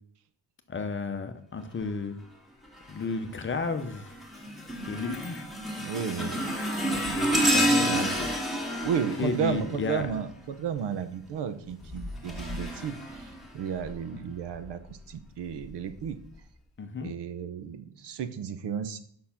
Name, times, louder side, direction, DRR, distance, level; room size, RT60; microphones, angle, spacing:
voice 1, 0.7-2.2 2.9-4.2 4.9-5.4 6.8-8.3 9.2-10.1 16.8-17.1, left 4 dB, 25° left, 8 dB, 0.7 m, -33 dB
sound 1, 2.8-3.1 3.6-10.4 11.7-13.9 14.5-14.7 15.6-15.7, equal, ahead, 1.9 m, -30 dB
voice 2, 5.8-6.5 7.1-7.3 7.6-8.1 8.8-16.2 17.0-19.0, right 8 dB, 65° right, 11 dB, 0.9 m, -33 dB
6.5 x 5.7 x 5.8 m, 0.63 s
cardioid pair, 130°, 44 cm